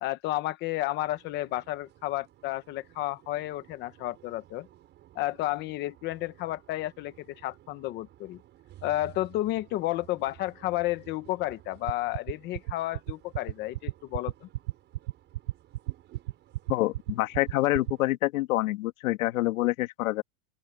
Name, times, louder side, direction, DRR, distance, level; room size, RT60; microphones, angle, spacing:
voice 1, 0.0-4.7 5.1-8.4 8.8-14.5, left 16 dB, 25° left, 0.9 m, -32 dB
sound 1, 1.0-18.1, right 13 dB, 25° right, 5.8 m, -56 dB
sound 2, 11.9-17.9, right 16 dB, 85° right, 4.2 m, -32 dB
voice 2, 16.7-20.2, left 17 dB, 75° left, 2.6 m, -27 dB
open air
supercardioid pair, 175°, 41 cm